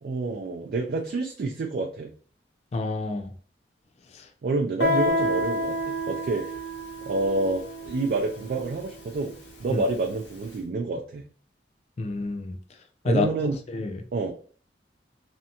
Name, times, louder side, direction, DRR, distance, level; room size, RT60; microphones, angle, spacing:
voice 1, 0.0-2.1 4.4-6.5 7.1-11.3 13.0-13.6 14.1-14.3, right 3 dB, 55° right, 2 dB, 0.3 m, -28 dB
voice 2, 2.7-3.3 4.1-4.2 9.7-9.8 12.0-12.6 13.0-13.3 13.7-14.0, left 3 dB, 35° left, 5 dB, 0.3 m, -28 dB
Guitar, 4.8-10.2, equal, 80° left, 1.0 m, -30 dB
2.5 x 2.2 x 2.7 m, 0.43 s
head